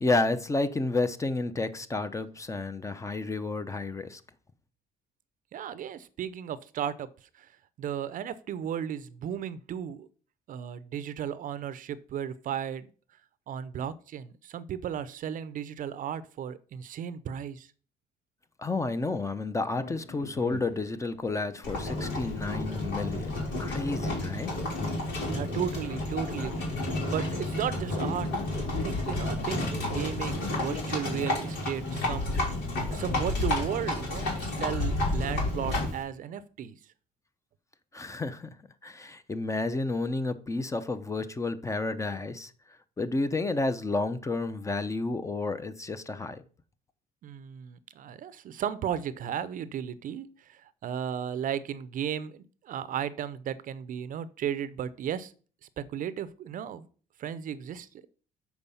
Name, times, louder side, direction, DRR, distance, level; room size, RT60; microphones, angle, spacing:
voice 1, 0.0-4.2 18.6-23.3 23.6-24.5 37.9-38.5 38.8-42.5 43.0-46.4, left 3 dB, 20° left, 0.6 m, -31 dB
voice 2, 5.5-7.5 7.8-10.1 10.5-12.9 13.5-17.7 25.3-28.3 28.6-32.3 32.9-36.8 47.2-55.3 55.8-56.9 57.2-58.1, right 9 dB, 55° right, 0.5 m, -35 dB
sound 1, 19.7-34.9, left 5 dB, 65° left, 0.9 m, -43 dB
Livestock farm animals working animals, 21.6-36.0, left 2 dB, 85° left, 3.7 m, -31 dB
6.9 x 4.6 x 5.5 m
cardioid pair, 110°, 17 cm